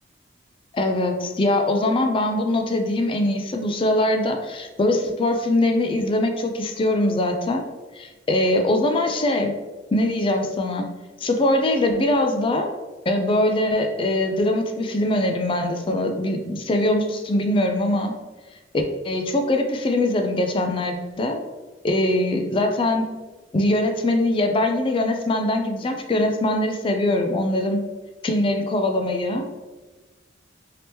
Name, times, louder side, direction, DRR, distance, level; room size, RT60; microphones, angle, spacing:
voice 1, 0.7-7.6 8.0-9.5 9.9-10.9 11.2-12.7 13.1-18.2 19.0-21.4 21.8-23.1 23.5-27.8 28.2-29.4, left 1 dB, 30° left, 5 dB, 0.3 m, -22 dB
3.3 x 2.8 x 3.0 m, 1.2 s
head